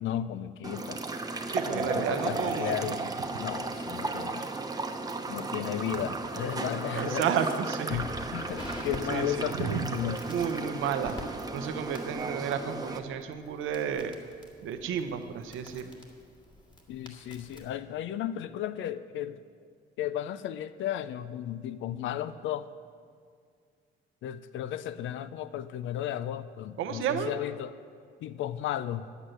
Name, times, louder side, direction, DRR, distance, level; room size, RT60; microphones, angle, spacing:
voice 1, 0.0-1.0 1.7-3.1 3.4-4.5 5.3-7.3 7.9-10.2 16.9-19.4 20.0-22.7 24.2-27.7 28.2-29.0, left 11 dB, 80° left, 15 dB, 0.5 m, -34 dB
sound 1, 0.6-13.0, right 3 dB, 20° right, 0.9 m, -35 dB
voice 2, 1.5-3.0 6.9-8.0 8.3-8.4 9.1-9.8 10.3-11.2 11.5-14.1 14.6-15.8 26.8-27.3, right 8 dB, 85° right, 8 dB, 0.8 m, -32 dB
Crackle, 7.9-17.8, left 2 dB, 20° left, 1.9 m, -47 dB
10.0 x 8.3 x 7.7 m, 2.1 s
cardioid pair, 90°, 20 cm